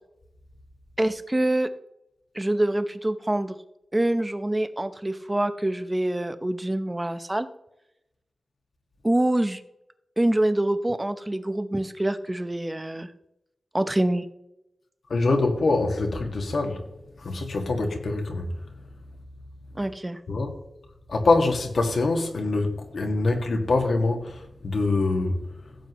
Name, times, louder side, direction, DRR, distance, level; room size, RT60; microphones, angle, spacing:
voice 1, 1.0-1.7 2.3-3.6 3.9-7.5 9.0-9.6 10.2-13.1 13.7-14.3 19.8-20.2, right 1 dB, 15° right, 0.7 m, -25 dB
voice 2, 15.1-16.9 17.2-18.7 20.3-20.6 21.1-25.8, left 3 dB, 70° left, 1.8 m, -24 dB
16.5 x 7.9 x 3.1 m
wide cardioid pair, 130°, 0 cm